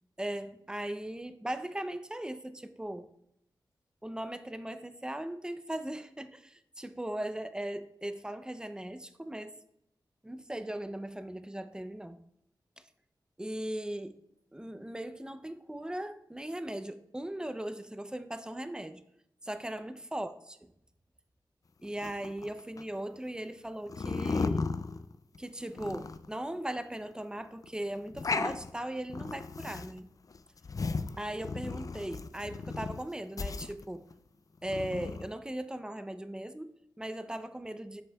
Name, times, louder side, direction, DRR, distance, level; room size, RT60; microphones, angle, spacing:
voice 1, 0.2-3.1 4.0-9.5 10.2-12.2 13.4-14.2 14.5-19.1 19.4-20.7 21.8-24.7 25.4-30.1 31.2-34.0 34.6-38.0, right 1 dB, 10° right, 0.5 m, -38 dB
sound 1, 22.0-22.8 23.9-25.4 25.7-26.4 26.8-26.9 27.1-27.2 27.6-27.7 28.0-28.7 29.1-30.0 30.3-33.0 33.4-34.1 34.6-35.3, left 4 dB, 45° left, 0.4 m, -35 dB
7.8 x 6.3 x 2.3 m
cardioid pair, 55°, 8 cm